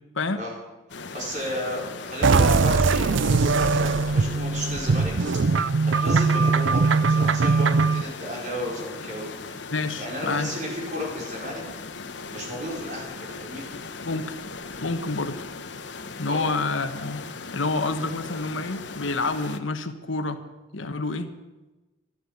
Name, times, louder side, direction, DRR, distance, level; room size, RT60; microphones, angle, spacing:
sound 1, 0.9-19.6, left 4 dB, 65° left, 1.0 m, -38 dB
voice 1, 1.1-5.1 5.5-9.6 10.0-11.6 12.1-13.7 16.2-16.5, equal, 40° right, -3 dB, 5.1 m, -34 dB
sound 2, 2.2-8.0, right 4 dB, 75° right, 0.5 m, -21 dB
voice 2, 9.7-10.5 14.0-14.4 14.8-15.4 16.2-17.3 17.5-20.4 20.7-21.3, left 3 dB, 85° left, 9 dB, 1.2 m, -28 dB
13.5 x 11.5 x 8.1 m, 1.1 s
head